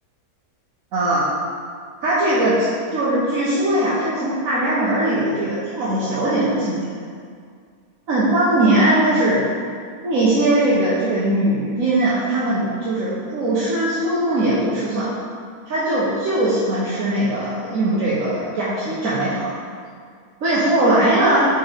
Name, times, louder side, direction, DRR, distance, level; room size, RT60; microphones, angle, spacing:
voice 1, 0.9-1.3 2.0-6.9 8.1-9.4 10.0-15.1 15.7-19.5 20.4-21.5, right 1 dB, 55° right, -9 dB, 1.5 m, -20 dB
5.7 x 5.3 x 5.1 m, 2.1 s
omnidirectional pair, 1.8 m